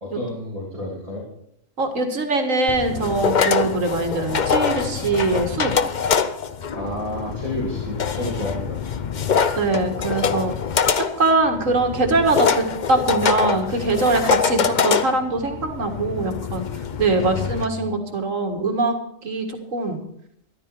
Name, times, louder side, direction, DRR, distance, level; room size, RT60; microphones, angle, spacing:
voice 1, 0.0-1.2 6.7-8.8 14.6-14.7 17.1-17.9, left 1 dB, 25° right, -4 dB, 3.1 m, -30 dB
voice 2, 1.8-5.7 9.6-10.5 11.2-16.7 17.0-18.9 19.2-19.5 19.7-20.0, right 3 dB, 90° right, 4 dB, 2.2 m, -22 dB
sound 1, 2.7-17.7, left 6 dB, 45° left, 0.7 m, -24 dB
13.5 x 12.5 x 4.6 m, 0.72 s
omnidirectional pair, 1.3 m